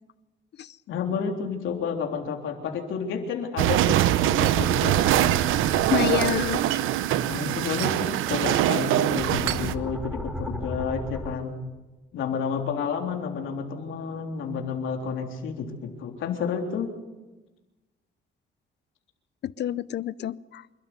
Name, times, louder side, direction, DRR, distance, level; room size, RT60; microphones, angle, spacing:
voice 1, 0.9-5.3 7.3-11.6 12.1-16.9, left 6 dB, 80° left, 2 dB, 3.6 m, -30 dB
sound 1, 3.6-9.7, right 12 dB, 90° right, 0.8 m, -23 dB
sound 2, 4.3-6.8 8.8-11.3, equal, 5° right, 5.6 m, -37 dB
voice 2, 5.9-6.6 19.4-20.7, left 11 dB, 60° left, 19 dB, 0.7 m, -27 dB
27.5 x 12.5 x 9.7 m, 1.1 s
cardioid pair, 90°, 20 cm